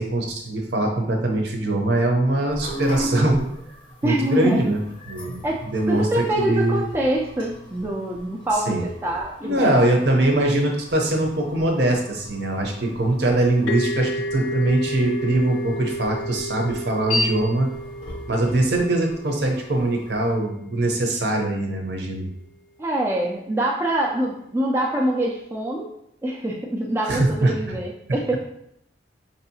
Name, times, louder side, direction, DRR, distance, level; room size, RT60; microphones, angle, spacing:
voice 1, 0.0-3.5 4.0-4.8 5.1-5.4 5.7-6.8 8.7-8.8 9.4-17.7 18.3-22.3 27.0-27.7, right 1 dB, 65° right, 1 dB, 0.7 m, -22 dB
sound 1, 2.5-20.3, left 1 dB, 25° left, 0.6 m, -36 dB
voice 2, 4.0-4.6 5.4-9.8 22.8-25.9 26.2-28.4, right 1 dB, 15° right, -2 dB, 0.3 m, -25 dB
sound 2, 13.7-21.2, equal, 80° left, 0.4 m, -33 dB
4.9 x 2.7 x 2.7 m, 0.75 s
head